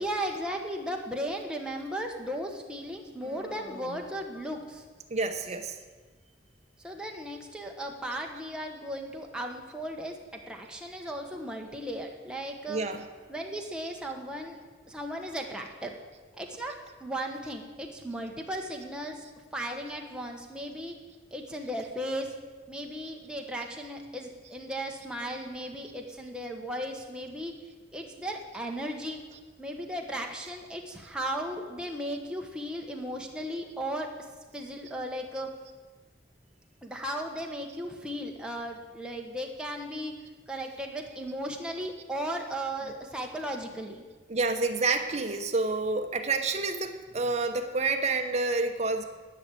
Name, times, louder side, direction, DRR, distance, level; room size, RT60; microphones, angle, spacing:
voice 1, 0.0-4.8 5.5-5.6 6.8-12.8 13.3-14.6 14.9-15.9 16.4-19.2 19.5-20.9 21.3-22.3 22.7-27.5 27.9-29.2 29.6-34.1 34.5-35.5 36.8-40.1 40.5-44.0, equal, 5° right, 1 dB, 1.2 m, -36 dB
Human voice, 3.2-4.9, right 1 dB, 80° left, 2.7 m, -47 dB
voice 2, 5.1-5.8 12.7-13.1 44.3-49.0, right 3 dB, 35° right, 6 dB, 0.9 m, -28 dB
11.0 x 6.1 x 8.4 m, 1.3 s
head